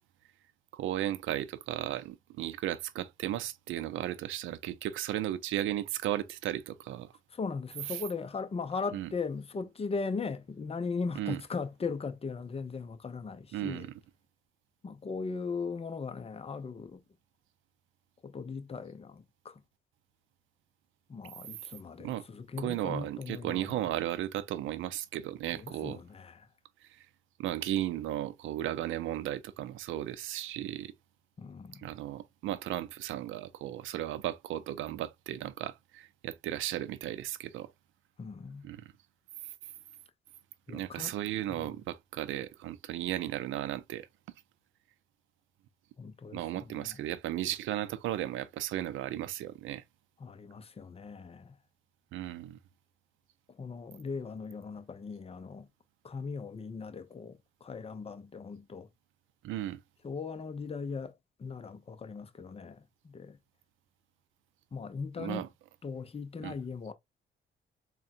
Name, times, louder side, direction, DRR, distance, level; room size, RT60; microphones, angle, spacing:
voice 1, 0.7-7.1 8.9-9.1 11.2-11.4 13.5-13.9 22.0-22.3 22.6-26.0 26.9-27.0 27.4-30.9 31.8-37.7 38.6-38.8 40.7-44.1 46.3-49.8 52.1-52.6 59.4-59.8 65.2-65.5 66.4-66.5, right 13 dB, 80° right, 0.5 m, -35 dB
voice 2, 7.3-13.9 14.8-17.0 18.2-19.6 21.1-23.8 25.5-26.5 31.4-31.9 38.2-38.7 40.7-41.1 41.5-41.7 46.0-47.0 50.2-51.6 53.5-55.7 56.0-58.9 60.0-63.4 64.7-65.5 65.8-66.9, left 4 dB, 30° left, 0.7 m, -39 dB
3.7 x 2.2 x 4.2 m
cardioid pair, 90°, 20 cm